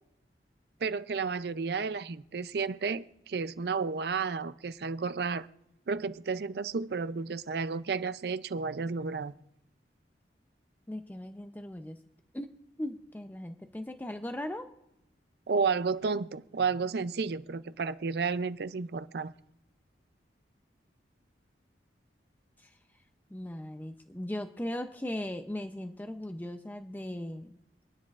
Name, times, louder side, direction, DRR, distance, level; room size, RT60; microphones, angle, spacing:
voice 1, 0.8-5.5 5.9-9.3 15.5-19.3, right 5 dB, 60° right, 0.4 m, -32 dB
voice 2, 10.9-12.0 12.3-12.5 12.8-14.7 22.6-22.7 23.3-27.6, left 1 dB, 10° left, 0.5 m, -38 dB
27.0 x 9.9 x 2.4 m
head